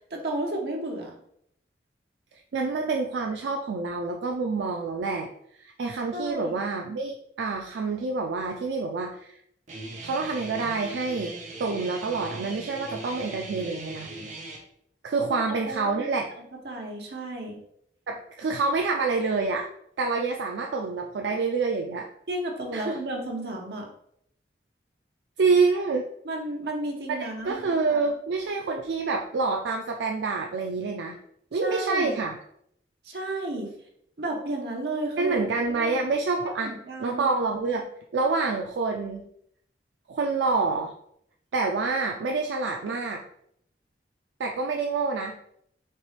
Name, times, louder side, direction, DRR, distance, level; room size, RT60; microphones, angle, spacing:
voice 1, 0.1-1.2 6.1-6.6 15.3-15.4 15.7-16.1 16.6-17.6 22.3-23.9 26.2-27.6 31.6-32.2 33.0-33.7 34.2-35.4 35.8-36.0 36.4-37.3, right 1 dB, 65° right, 1 dB, 0.9 m, -32 dB
voice 2, 2.5-5.3 5.6-9.4 10.0-11.3 11.6-14.1 15.0-16.3 18.1-19.7 20.0-22.1 22.7-23.0 25.4-26.0 27.1-27.2 27.4-31.2 31.5-32.4 35.2-36.7 37.0-37.9 38.1-39.3 40.1-40.9 41.5-43.2 44.4-45.4, right 4 dB, 85° right, 2 dB, 0.4 m, -27 dB
Guitar, 9.7-14.6, right 2 dB, 40° right, 0.7 m, -39 dB
4.4 x 3.2 x 3.1 m, 0.71 s
head